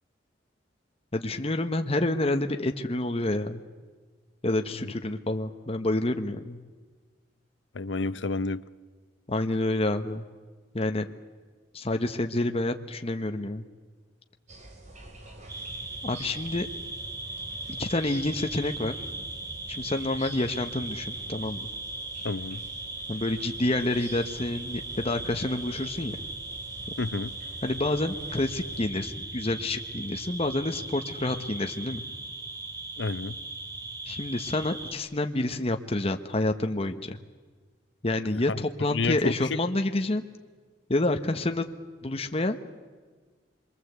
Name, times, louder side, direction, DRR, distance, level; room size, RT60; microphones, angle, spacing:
voice 1, 1.1-3.6 4.4-6.6 9.3-10.2 10.7-11.1 11.7-13.6 16.0-16.7 17.8-19.0 19.8-21.7 23.1-26.2 27.6-32.0 34.1-37.2 38.0-40.2 40.9-41.6 42.0-42.6, left 2 dB, 35° left, 6 dB, 1.1 m, -28 dB
voice 2, 7.7-8.6 22.2-22.6 27.0-27.3 33.0-33.4 38.3-38.6 38.9-39.6, left 3 dB, 90° left, 16 dB, 0.7 m, -30 dB
sound 1, 14.5-28.8, right 1 dB, 40° right, 3.4 m, -48 dB
sound 2, 15.5-34.9, right 2 dB, 20° right, 2.2 m, -38 dB
27.0 x 23.0 x 8.1 m, 1.5 s
head